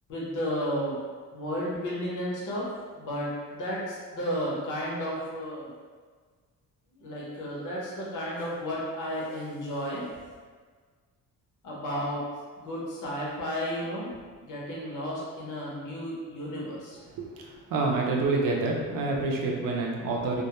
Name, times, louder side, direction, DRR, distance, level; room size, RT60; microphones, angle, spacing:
voice 1, 0.1-1.0 1.3-2.6 2.9-5.7 6.9-10.0 11.6-12.2 12.6-14.1 14.4-17.0, equal, 60° left, -5 dB, 0.8 m, -33 dB
voice 2, 17.7-20.4, right 3 dB, 70° right, -1 dB, 0.5 m, -27 dB
2.3 x 2.1 x 2.8 m, 1.5 s
cardioid pair, 130°, 35 cm